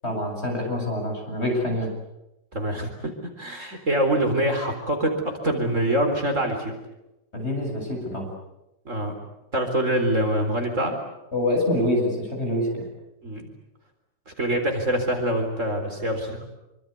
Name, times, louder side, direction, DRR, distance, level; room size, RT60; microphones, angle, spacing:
voice 1, 0.0-1.9 7.3-8.3 11.3-12.9, left 1 dB, 35° left, 1 dB, 8.2 m, -26 dB
voice 2, 2.5-3.1 3.4-6.7 8.9-9.1 9.5-11.0 13.2-13.5 14.3-16.4, right 1 dB, 45° right, 4 dB, 4.3 m, -25 dB
26.5 x 25.0 x 8.3 m, 0.91 s
omnidirectional pair, 1.9 m